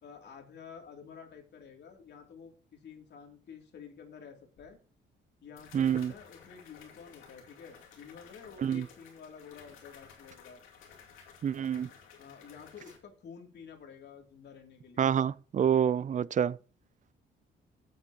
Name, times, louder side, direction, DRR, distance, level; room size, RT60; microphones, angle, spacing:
voice 1, 0.0-4.8 5.4-10.6 12.2-15.1, left 6 dB, 60° left, 2.8 m, -50 dB
sound 1, 4.6-4.7 5.6-13.0, left 7 dB, 90° left, 2.4 m, -55 dB
voice 2, 5.7-6.1 8.6-8.9 11.4-11.9 15.0-16.6, right 8 dB, 40° right, 0.5 m, -27 dB
15.5 x 8.0 x 2.9 m
cardioid pair, 90°, 20 cm